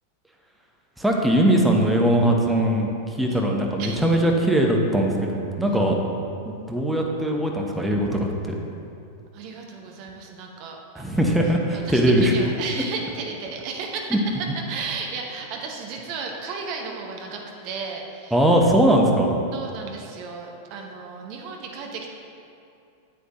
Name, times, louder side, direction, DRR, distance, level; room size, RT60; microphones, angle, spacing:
voice 1, 1.0-2.9 3.2-6.0 6.4-8.5 11.0-12.3 14.1-14.2 18.3-19.4, right 1 dB, 5° right, 0 dB, 1.0 m, -20 dB
voice 2, 3.8-4.1 9.3-11.3 11.7-18.4 19.5-22.1, right 5 dB, 45° right, 1 dB, 0.9 m, -34 dB
9.4 x 8.3 x 3.0 m, 2.7 s
figure-of-eight pair, 90°, 0 cm